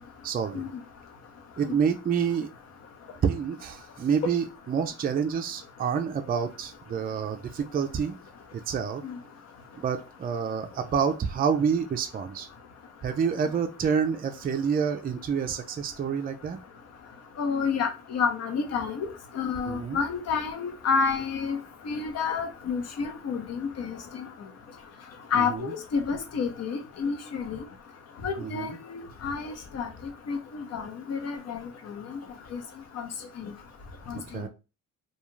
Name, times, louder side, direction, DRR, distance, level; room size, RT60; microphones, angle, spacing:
voice 1, 0.2-0.6 1.6-2.5 3.2-8.1 8.5-9.0 9.8-12.5 13.0-16.6 19.7-20.0 25.3-25.7 28.4-28.8 34.1-34.5, right 6 dB, 30° right, 5 dB, 0.4 m, -28 dB
voice 2, 17.4-19.1 19.3-21.6 21.8-24.3 25.3-27.6 28.2-29.9 30.3-32.2 32.5-32.6 32.9-33.1 33.4-33.5 34.1-34.5, left 5 dB, 55° left, 6 dB, 0.8 m, -30 dB
2.3 x 2.3 x 3.0 m, 0.30 s
cardioid pair, 90°, 30 cm